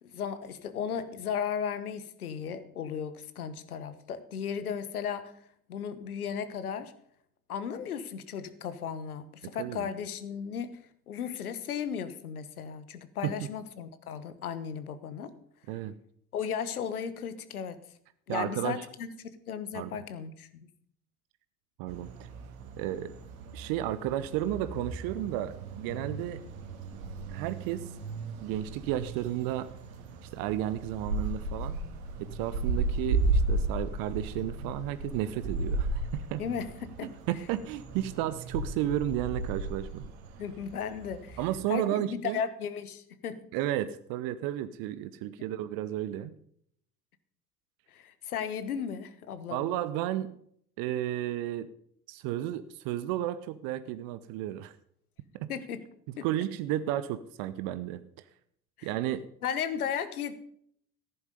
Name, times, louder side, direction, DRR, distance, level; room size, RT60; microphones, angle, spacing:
voice 1, 0.0-5.3 5.7-6.9 7.5-15.3 16.3-17.8 18.3-20.7 36.4-37.1 40.4-41.4 41.7-43.5 45.4-45.5 47.9-49.7 55.5-55.8 56.2-56.3 58.8-58.9 59.4-60.3, left 7 dB, 75° left, 13 dB, 1.2 m, -35 dB
voice 2, 18.3-18.9 19.7-19.9 21.8-22.3 22.8-23.1 23.5-26.4 27.3-27.8 28.4-29.7 30.2-31.8 32.2-36.4 37.3-40.1 41.4-42.4 43.5-46.3 49.5-50.3 50.8-51.7 52.1-54.8 55.3-55.5 56.2-58.0 58.8-59.2, right 13 dB, 50° right, 14 dB, 0.8 m, -33 dB
sound 1, 21.9-41.6, right 2 dB, 65° right, 2.0 m, -35 dB
14.5 x 11.0 x 5.2 m, 0.67 s
figure-of-eight pair, 65°, 44 cm